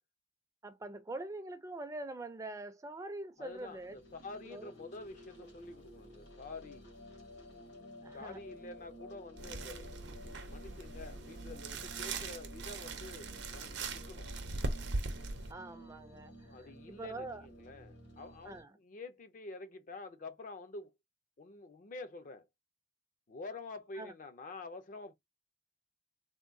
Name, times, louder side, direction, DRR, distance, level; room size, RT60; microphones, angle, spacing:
voice 1, 0.6-4.0 4.5-4.7 8.0-8.4 15.5-16.5 16.9-17.4 18.4-18.7 24.0-24.1, right 2 dB, 20° right, 0.4 m, -44 dB
sound 1, 3.4-18.6, equal, 75° left, 1.4 m, -53 dB
voice 2, 3.4-6.8 8.1-14.3 16.5-20.9 21.4-22.5 23.3-25.1, left 3 dB, 50° left, 0.5 m, -48 dB
sound 2, 9.4-15.5, right 3 dB, 80° right, 0.7 m, -40 dB
3.5 x 2.2 x 2.5 m
head